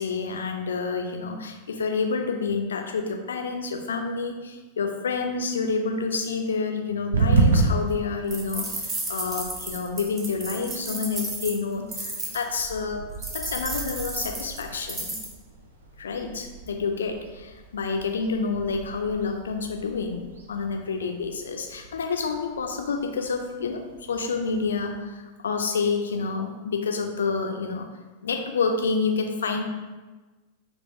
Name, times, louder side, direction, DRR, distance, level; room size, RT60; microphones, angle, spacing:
voice 1, 0.0-13.1 13.3-15.1 16.0-23.8 24.1-27.9 28.2-29.6, left 4 dB, 65° left, 4 dB, 0.4 m, -28 dB
sound 1, 7.1-25.0, right 3 dB, 65° right, 0.4 m, -32 dB
sound 2, 8.3-12.4 13.2-15.3, right 2 dB, 20° right, 0.6 m, -33 dB
3.6 x 2.4 x 2.7 m, 1.2 s
figure-of-eight pair, 90°, 0 cm